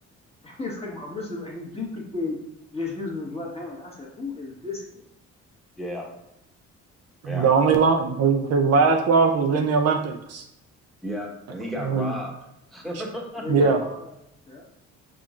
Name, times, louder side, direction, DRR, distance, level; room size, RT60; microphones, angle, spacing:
voice 1, 0.4-2.4 2.7-4.8 13.4-14.1 14.5-14.6, left 3 dB, 20° left, -3 dB, 1.4 m, -33 dB
voice 2, 5.8-6.1 7.2-7.5 11.0-12.3 12.7-13.4, equal, ahead, -3 dB, 1.2 m, -33 dB
voice 3, 7.2-10.4 11.8-12.1 13.5-13.8, right 5 dB, 55° right, 4 dB, 0.5 m, -20 dB
5.3 x 3.7 x 2.4 m, 0.84 s
cardioid pair, 90°, 30 cm